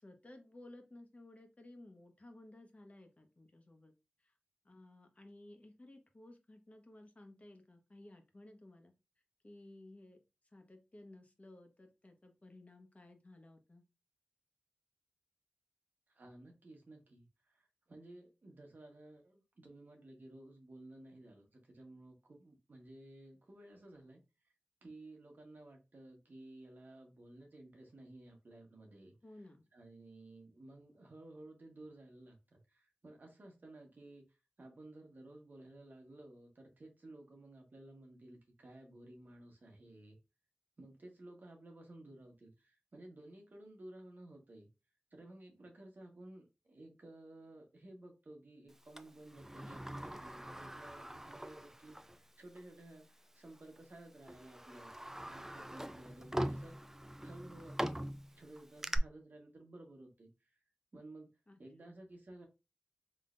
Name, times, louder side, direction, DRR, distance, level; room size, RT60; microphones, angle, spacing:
voice 1, 0.0-3.9 4.2-4.3 4.6-8.9 9.4-10.2 10.5-13.8 29.2-29.6 61.5-62.0, left 1 dB, 45° left, 1.1 m, -57 dB
voice 2, 16.1-24.2 24.8-29.1 29.7-40.2 40.8-44.7 45.1-54.9 55.2-56.8 57.2-58.0 58.4-60.6 60.9-61.3 61.6-62.5, right 1 dB, 70° right, 1.3 m, -55 dB
Sliding door, 49.0-52.2 52.6-52.7 53.6-53.8 54.3-59.0, right 1 dB, 10° right, 0.4 m, -42 dB
3.8 x 3.2 x 2.5 m
cardioid pair, 40°, 3 cm